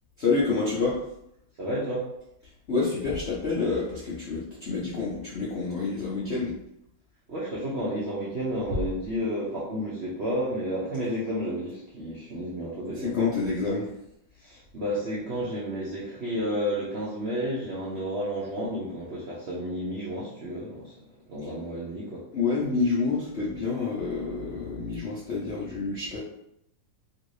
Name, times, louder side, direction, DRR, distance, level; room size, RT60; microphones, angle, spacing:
voice 1, 0.2-1.0 2.7-6.6 13.0-13.9 22.3-26.2, left 4 dB, 65° left, -8 dB, 0.6 m, -28 dB
voice 2, 1.6-2.1 7.3-13.1 14.3-22.3, equal, 65° right, -8 dB, 0.6 m, -31 dB
3.1 x 2.7 x 3.1 m, 0.78 s
omnidirectional pair, 2.1 m